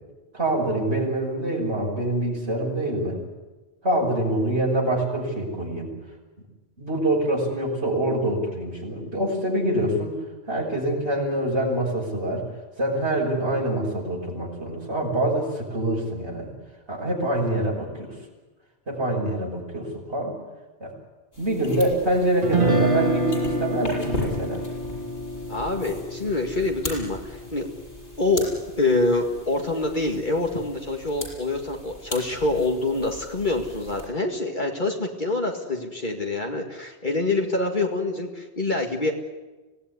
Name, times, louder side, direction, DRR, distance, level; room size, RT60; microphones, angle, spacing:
voice 1, 0.3-3.2 3.8-5.9 6.8-10.1 10.5-12.4 12.8-16.5 16.9-18.2 18.9-20.4 20.8-20.9 21.4-24.6, right 1 dB, 80° right, -4 dB, 6.0 m, -25 dB
sound 1, 21.3-34.1, left 1 dB, 65° left, 6.5 m, -39 dB
Guitar, 22.4-28.5, right 1 dB, 50° right, 2.0 m, -28 dB
voice 2, 25.5-27.7 28.2-28.5 28.8-39.1, left 2 dB, 45° left, 1 dB, 2.2 m, -26 dB
25.5 x 17.5 x 9.7 m, 1.2 s
omnidirectional pair, 1.1 m